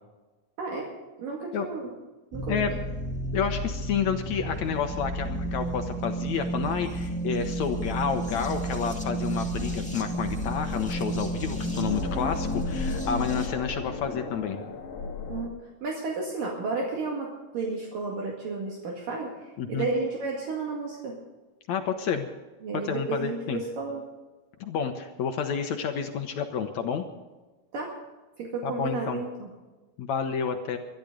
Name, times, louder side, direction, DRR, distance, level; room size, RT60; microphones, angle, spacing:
voice 1, 0.6-0.9 1.2-1.9 2.3-2.8 15.3-21.2 22.6-24.0 27.7-28.0 28.4-29.5, right 3 dB, 60° right, -2 dB, 3.6 m, -32 dB
sound 1, 2.3-13.5, right 1 dB, 5° left, 1.2 m, -32 dB
voice 2, 3.3-14.6 19.6-19.9 21.7-22.3 22.9-23.6 24.6-27.0 28.6-29.2 30.0-30.8, left 7 dB, 70° left, 6 dB, 1.7 m, -30 dB
sound 2, 9.1-15.5, left 3 dB, 50° left, 2.0 m, -36 dB
23.5 x 12.0 x 3.9 m, 1.2 s
omnidirectional pair, 4.5 m